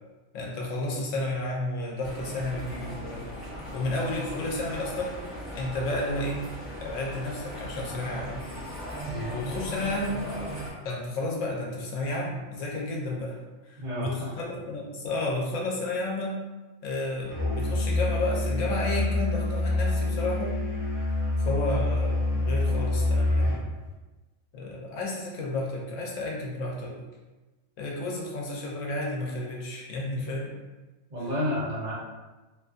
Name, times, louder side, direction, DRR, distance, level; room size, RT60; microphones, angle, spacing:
voice 1, 0.3-3.2 3.7-5.1 5.5-6.5 6.8-8.4 9.3-10.3 10.8-13.4 13.7-16.4 16.8-20.6 21.4-23.6 24.5-26.9 27.8-30.6, left 2 dB, 80° left, -2 dB, 1.0 m, -32 dB
sound 1, 2.0-10.7, equal, ahead, 0.8 m, -38 dB
voice 2, 13.8-14.4 31.1-31.9, equal, 45° right, -9 dB, 0.9 m, -31 dB
Musical instrument, 17.3-23.7, left 2 dB, 25° left, 0.5 m, -26 dB
2.6 x 2.5 x 2.4 m, 1.2 s
omnidirectional pair, 1.3 m